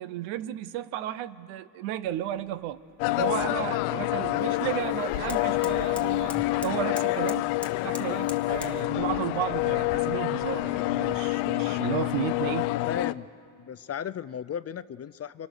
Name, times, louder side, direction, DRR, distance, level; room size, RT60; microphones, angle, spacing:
voice 1, 0.0-2.8 3.2-7.5 7.8-12.7, right 12 dB, 85° right, 1.0 m, -33 dB
sound 1, 2.0-8.8, left 1 dB, ahead, 1.3 m, -47 dB
sound 2, 3.0-13.1, left 19 dB, 85° left, 0.7 m, -27 dB
voice 2, 4.3-4.8 12.6-13.3 13.6-15.5, left 8 dB, 30° left, 0.5 m, -36 dB
29.5 x 24.5 x 6.5 m
supercardioid pair, 95°, 48 cm